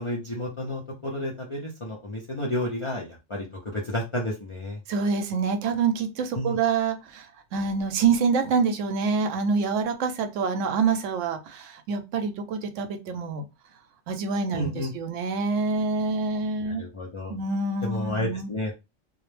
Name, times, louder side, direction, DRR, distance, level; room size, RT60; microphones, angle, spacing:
voice 1, 0.0-4.8 6.3-6.6 14.5-14.9 16.8-17.3 17.8-18.7, left 1 dB, 45° left, 0.4 m, -31 dB
voice 2, 4.9-7.3 7.5-13.4 14.1-16.8 17.3-18.5, right 5 dB, 80° right, 0.9 m, -26 dB
2.4 x 2.0 x 3.1 m
omnidirectional pair, 1.3 m